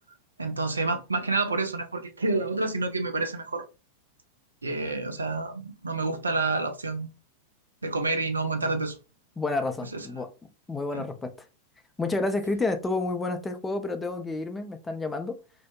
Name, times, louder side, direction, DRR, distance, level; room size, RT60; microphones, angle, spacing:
voice 1, 0.4-3.6 4.6-7.1 7.8-9.0 9.9-10.1 10.9-11.0, right 3 dB, 75° right, 0.4 m, -28 dB
voice 2, 9.4-10.3 10.7-11.3 12.0-15.4, left 3 dB, 10° left, 0.4 m, -29 dB
2.6 x 2.1 x 2.2 m
figure-of-eight pair, 90°, 0 cm